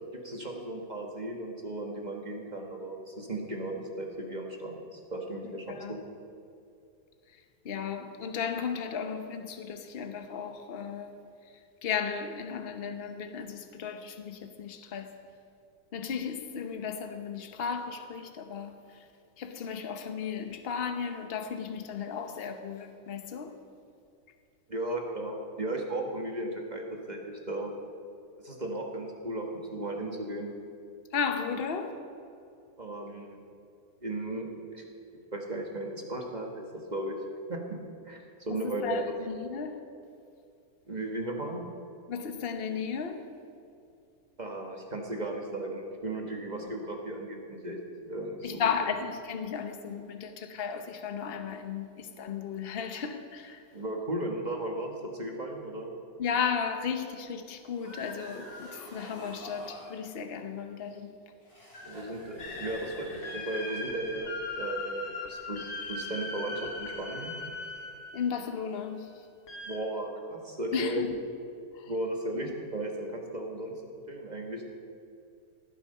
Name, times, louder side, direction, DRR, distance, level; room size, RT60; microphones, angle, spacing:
voice 1, 0.1-6.0 24.7-27.7 28.4-30.5 32.8-33.4 34.0-34.8 35.3-36.6 36.9-37.2 37.5-37.6 38.0-39.1 40.9-41.6 44.4-47.8 48.1-48.6 53.7-55.9 61.9-67.3 69.7-71.1 71.9-73.7 74.1-74.7, right 1 dB, 25° right, 1.3 m, -35 dB
voice 2, 5.4-6.0 7.3-11.1 11.8-15.2 15.9-19.1 19.4-23.5 31.1-32.0 38.5-39.8 42.1-43.2 48.4-53.7 56.2-61.1 68.1-69.3 70.7-71.2 71.7-71.9, left 6 dB, 45° left, 0.8 m, -35 dB
sound 1, 57.6-60.0 61.4-63.9, left 1 dB, 65° left, 4.6 m, -46 dB
sound 2, 62.4-68.5 69.5-69.8, left 2 dB, 90° left, 2.5 m, -39 dB
18.0 x 8.5 x 5.5 m
omnidirectional pair, 2.1 m